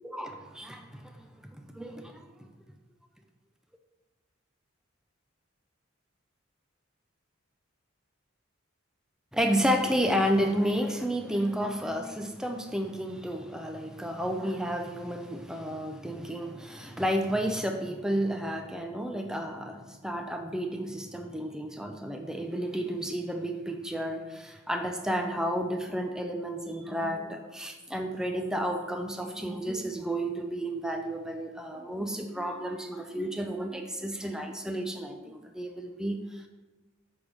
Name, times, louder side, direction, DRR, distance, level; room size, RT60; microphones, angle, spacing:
voice 1, 0.0-2.3 9.3-36.5, equal, 5° right, 5 dB, 0.4 m, -31 dB
7.9 x 3.5 x 5.3 m, 1.2 s
head